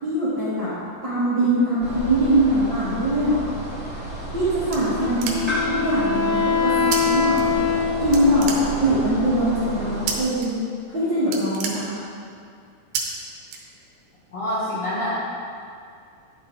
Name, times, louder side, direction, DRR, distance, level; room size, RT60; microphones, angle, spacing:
voice 1, 0.0-0.7 1.0-3.4 4.3-5.4 5.7-7.6 8.0-10.6 10.9-12.0, right 1 dB, 50° right, -12 dB, 1.4 m, -22 dB
sound 1, 1.8-10.2, right 1 dB, 10° right, 0.6 m, -31 dB
sound 2, 4.2-5.7 6.9-7.0 7.3-7.9 8.1-9.1 10.1-10.5 10.8-10.9 11.2-12.4 12.9-13.0 13.5-14.1, right 6 dB, 75° right, 2.7 m, -30 dB
Wind instrument woodwind instrument, 5.0-8.6, left 6 dB, 80° left, 2.1 m, -24 dB
voice 2, 14.3-15.3, left 1 dB, 65° left, -9 dB, 1.4 m, -26 dB
10.5 x 6.1 x 3.8 m, 2.3 s
omnidirectional pair, 4.6 m